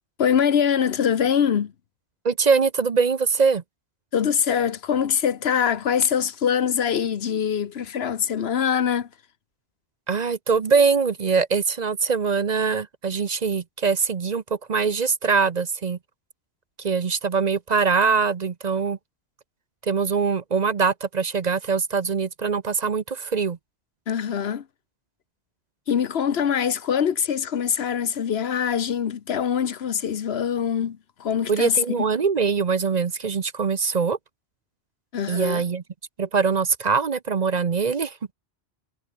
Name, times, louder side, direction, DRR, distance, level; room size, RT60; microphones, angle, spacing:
voice 1, 0.2-1.7 4.1-9.1 24.1-24.6 25.9-32.0 35.1-35.6, left 8 dB, 75° left, 1.2 m, -23 dB
voice 2, 2.2-3.6 10.1-14.4 14.7-16.0 16.8-19.0 19.8-23.6 31.5-34.2 35.3-35.8 36.2-38.3, right 5 dB, 45° right, 0.8 m, -23 dB
omnidirectional pair, 1.1 m